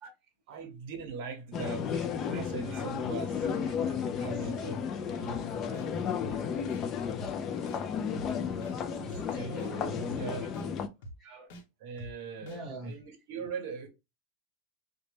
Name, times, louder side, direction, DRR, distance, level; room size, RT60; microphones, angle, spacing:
voice 1, 0.5-3.5 4.2-6.3 8.1-10.6 11.8-13.9, right 6 dB, 60° right, 0.8 m, -42 dB
sound 1, 1.5-10.9, left 7 dB, 25° left, 0.3 m, -33 dB
voice 2, 1.9-2.9 3.4-4.5 5.3-5.4 5.6-5.8 11.2-11.5 12.4-13.0, right 1 dB, 15° right, 0.9 m, -47 dB
sound 2, 5.3-5.4 5.7-5.9 6.2-6.4 6.7-6.8 7.2-7.3 7.7-7.8 8.1-8.3 8.6-8.8 9.1-9.2 9.6-9.7 10.1-10.2 10.5-10.7 11.0-11.2 11.5-11.6 12.0-12.1 12.5-12.6, right 1 dB, 60° left, 0.8 m, -44 dB
3.9 x 2.1 x 3.2 m
supercardioid pair, 170°, 0 cm